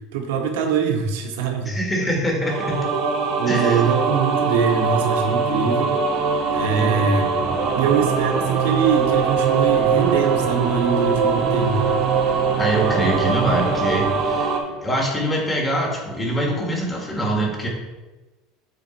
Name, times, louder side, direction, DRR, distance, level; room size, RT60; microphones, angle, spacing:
voice 1, 0.1-1.7 3.4-6.0 6.5-11.8, right 6 dB, 85° right, 4 dB, 1.2 m, -23 dB
voice 2, 1.7-2.7 3.5-3.8 6.8-7.0 12.6-14.6 14.8-17.7, right 1 dB, 15° left, -1 dB, 1.9 m, -24 dB
sound 1, 2.4-14.6, right 5 dB, 55° right, 1.2 m, -22 dB
sound 2, 2.7-15.4, right 3 dB, 15° right, 0.6 m, -36 dB
8.1 x 4.0 x 4.5 m, 1.2 s
supercardioid pair, 130°, 0 cm